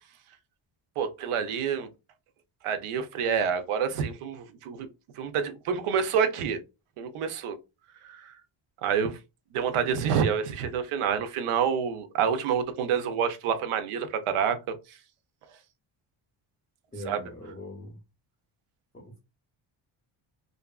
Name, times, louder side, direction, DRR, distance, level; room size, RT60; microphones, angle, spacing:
voice 1, 1.0-1.9 2.6-4.9 5.2-6.6 7.0-7.6 8.0-8.3 8.8-9.2 9.5-14.7 17.0-17.2, right 7 dB, 80° right, 0.6 m, -28 dB
voice 2, 16.9-18.0 18.9-19.2, left 1 dB, 15° left, 0.6 m, -41 dB
2.6 x 2.4 x 2.3 m
cardioid pair, 105°, 50 cm